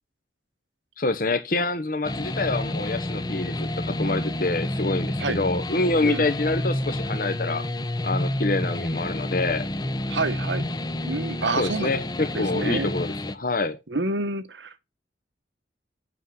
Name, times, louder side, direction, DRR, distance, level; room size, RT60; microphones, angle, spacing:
voice 1, 1.0-7.6 8.0-9.6 11.6-13.8, left 2 dB, 50° left, 1.1 m, -26 dB
sound 1, 2.0-13.4, left 1 dB, 20° left, 0.8 m, -29 dB
voice 2, 10.1-10.6 11.0-11.9 12.3-12.9 13.9-14.8, right 3 dB, 80° right, 1.4 m, -28 dB
8.4 x 6.4 x 5.5 m
head